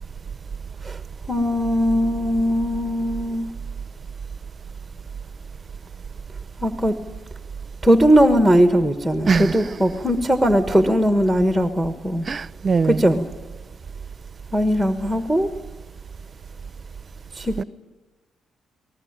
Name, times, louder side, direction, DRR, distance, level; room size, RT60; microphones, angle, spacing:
voice 1, 1.3-3.5 6.6-6.9 7.8-12.3 12.8-13.3 14.5-15.5 17.3-17.6, equal, ahead, 1.4 m, -19 dB
voice 2, 9.3-9.8 12.3-13.0 17.6-17.7, right 5 dB, 40° right, 0.7 m, -22 dB
21.0 x 19.0 x 8.9 m
cardioid pair, 90°, 0 cm